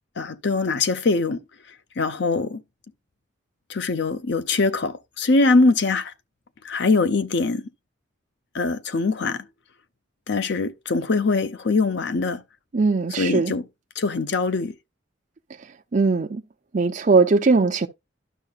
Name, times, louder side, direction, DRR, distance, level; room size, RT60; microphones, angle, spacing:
voice 1, 0.2-1.4 2.0-2.6 3.7-6.1 6.6-7.7 8.5-9.5 10.3-12.4 13.2-13.6 14.0-14.7, left 3 dB, 65° left, 0.6 m, -22 dB
voice 2, 12.7-13.5 15.9-16.4 16.7-17.9, right 4 dB, 40° right, 0.5 m, -19 dB
12.0 x 5.7 x 2.4 m
head